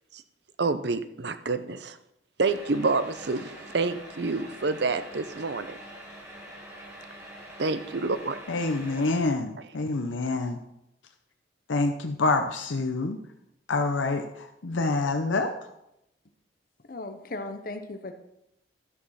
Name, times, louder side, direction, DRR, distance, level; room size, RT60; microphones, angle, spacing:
voice 1, 0.6-2.0 2.4-5.8 7.6-8.4, right 3 dB, 60° right, 11 dB, 0.7 m, -28 dB
sound 1, 2.5-9.2, equal, 15° right, 2.4 m, -45 dB
voice 2, 8.5-10.6 11.7-13.2 13.7-15.5, left 3 dB, 85° left, 6 dB, 0.7 m, -27 dB
voice 3, 16.8-18.1, left 2 dB, 50° left, 7 dB, 0.8 m, -37 dB
12.5 x 6.3 x 5.6 m, 0.84 s
head